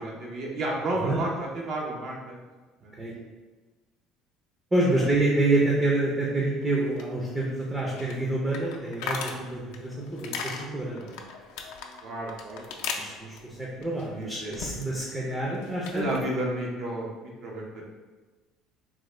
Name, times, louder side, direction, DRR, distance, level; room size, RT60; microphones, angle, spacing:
voice 1, 0.0-2.4 2.8-3.2 4.9-5.1 12.0-13.1 14.2-14.6 15.9-17.8, right 1 dB, 55° right, -2 dB, 0.6 m, -32 dB
voice 2, 4.7-11.2 13.0-16.1, right 2 dB, 15° right, -4 dB, 0.5 m, -27 dB
sound 1, 6.6-15.1 15.4-16.3, left 5 dB, 85° left, 0.4 m, -39 dB
3.6 x 2.1 x 3.1 m, 1.3 s
cardioid pair, 145°, 0 cm